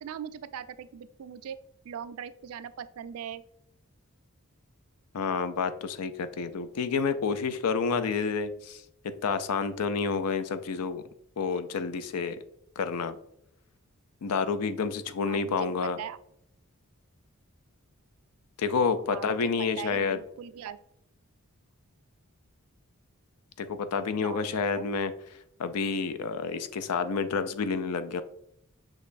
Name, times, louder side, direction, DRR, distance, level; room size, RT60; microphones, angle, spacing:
voice 1, 0.0-1.6 1.8-3.4 15.2-16.2 19.1-20.8 24.2-24.9, right 8 dB, 75° right, 14 dB, 0.3 m, -41 dB
voice 2, 5.1-8.8 9.2-11.0 11.4-12.4 12.8-13.2 14.2-16.0 18.6-20.2 23.6-25.1 25.6-28.2, left 5 dB, 90° left, 11 dB, 0.4 m, -29 dB
6.4 x 3.0 x 2.5 m, 0.75 s
head